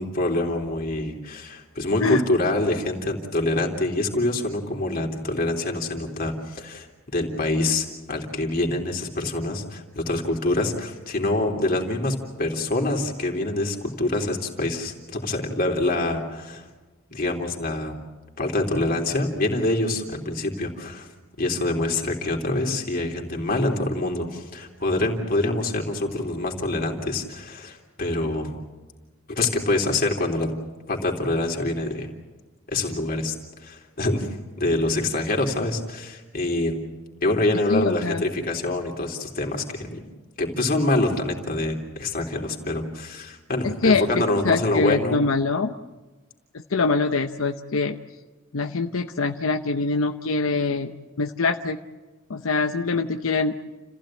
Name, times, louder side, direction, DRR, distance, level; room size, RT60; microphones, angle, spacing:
voice 1, 0.0-6.9 7.1-16.7 17.1-18.0 18.4-21.1 21.4-28.5 29.3-30.5 30.9-32.1 32.7-33.3 33.6-34.3 34.6-36.7 37.2-40.0 40.4-45.2, left 2 dB, 45° left, 2 dB, 3.3 m, -25 dB
voice 2, 37.7-38.2 43.6-45.7 46.5-48.0 48.5-50.9 51.2-51.8 52.3-53.5, left 3 dB, 85° left, 6 dB, 0.8 m, -24 dB
29.5 x 15.5 x 8.9 m, 1.2 s
head